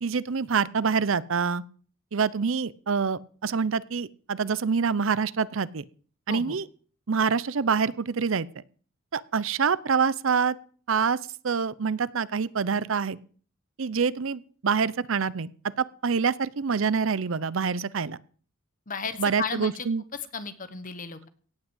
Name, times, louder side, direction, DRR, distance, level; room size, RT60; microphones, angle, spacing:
voice 1, 0.0-1.6 2.1-5.9 6.3-6.7 7.1-8.6 9.1-10.5 10.9-11.2 11.4-13.2 13.8-15.5 16.0-18.2 19.2-20.0, right 5 dB, 65° right, 19 dB, 0.6 m, -26 dB
voice 2, 18.9-19.9 20.3-21.3, left 5 dB, 40° left, 11 dB, 1.4 m, -34 dB
17.0 x 6.1 x 8.2 m, 0.43 s
head